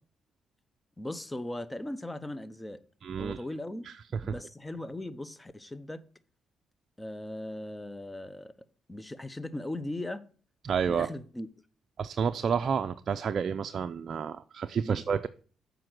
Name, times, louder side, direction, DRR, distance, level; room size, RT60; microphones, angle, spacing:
voice 1, 1.0-2.8 3.2-3.8 4.2-6.0 7.0-8.6 8.9-10.2 10.9-11.5 14.8-15.0, left 1 dB, 10° left, 0.6 m, -38 dB
voice 2, 3.0-3.4 3.8-3.9 10.6-11.1 12.0-15.3, right 6 dB, 50° right, 0.4 m, -30 dB
7.7 x 5.1 x 6.0 m
cardioid pair, 90°, 0 cm